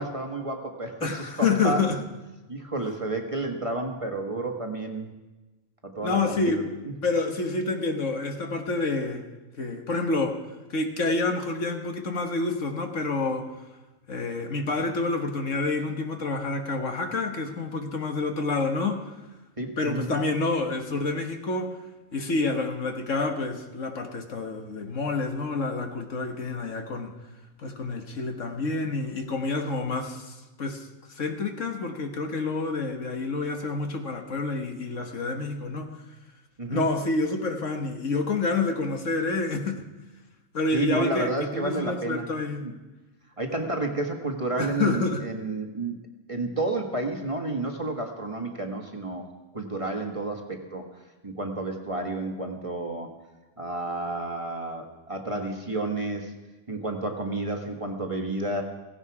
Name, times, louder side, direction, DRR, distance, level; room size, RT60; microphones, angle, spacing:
voice 1, 0.0-1.9 2.5-5.1 5.8-6.6 19.6-20.1 36.6-36.9 40.7-42.3 42.6-42.7 43.4-46.0 46.3-49.2 49.5-50.8 51.2-53.1 53.6-56.3 56.7-58.6, right 2 dB, 25° right, 2 dB, 1.6 m, -31 dB
voice 2, 1.0-2.0 6.0-6.6 7.0-9.3 9.6-10.4 10.7-13.5 14.1-19.1 19.8-21.8 22.1-27.1 27.6-35.9 36.7-39.8 40.5-42.6 44.6-45.3, left 3 dB, 60° left, 5 dB, 1.7 m, -28 dB
16.5 x 16.5 x 4.9 m, 1.1 s
omnidirectional pair, 1.5 m